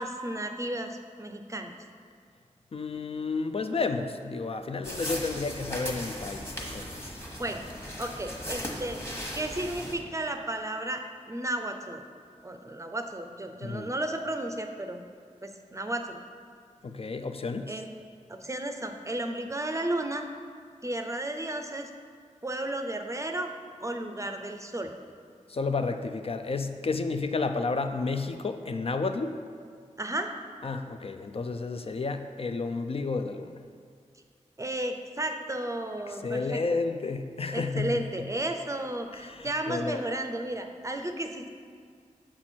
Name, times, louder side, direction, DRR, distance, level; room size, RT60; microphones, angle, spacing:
voice 1, 0.0-1.7 7.4-7.6 8.0-9.0 9.3-12.0 12.4-15.0 15.4-16.2 17.7-17.9 18.3-20.2 20.8-21.9 22.4-23.5 23.8-24.9 30.0-30.3 34.6-36.6 37.5-41.5, right 1 dB, 25° right, 5 dB, 0.5 m, -33 dB
voice 2, 2.7-7.2 13.6-13.9 16.8-17.7 25.5-29.4 30.6-33.6 36.1-38.3 39.1-40.0, left 4 dB, 50° left, 7 dB, 0.4 m, -31 dB
sound 1, 4.8-9.9, equal, 20° left, 1.2 m, -37 dB
7.4 x 4.4 x 4.4 m, 2.1 s
wide cardioid pair, 65°, 13 cm